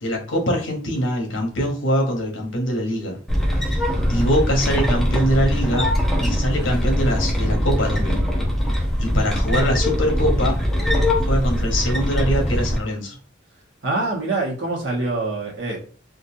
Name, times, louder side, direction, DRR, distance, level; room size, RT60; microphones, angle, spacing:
voice 1, 0.0-3.2 3.6-3.8 4.1-5.9 6.2-8.2 9.0-10.6 11.2-13.2, equal, 75° left, 2 dB, 1.1 m, -23 dB
sound 1, 3.3-12.8, equal, ahead, 0.7 m, -21 dB
voice 2, 3.8-4.3 13.8-15.8, right 2 dB, 65° right, -2 dB, 1.1 m, -25 dB
3.8 x 2.5 x 2.7 m, 0.39 s
head